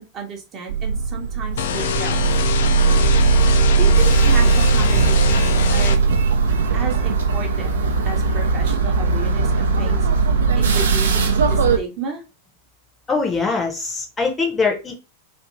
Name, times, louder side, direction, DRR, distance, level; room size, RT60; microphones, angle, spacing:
voice 1, 0.0-2.4 3.8-6.0 6.7-7.8 8.0-12.2, right 5 dB, 30° right, 1 dB, 0.7 m, -32 dB
sound 1, 0.7-11.8, right 4 dB, 65° right, 0.5 m, -18 dB
sound 2, 1.6-6.0, left 8 dB, 60° left, 0.3 m, -24 dB
voice 2, 13.1-15.0, left 4 dB, 20° left, 1 dB, 0.7 m, -22 dB
2.8 x 2.5 x 2.5 m, 0.30 s
figure-of-eight pair, 90°, 0 cm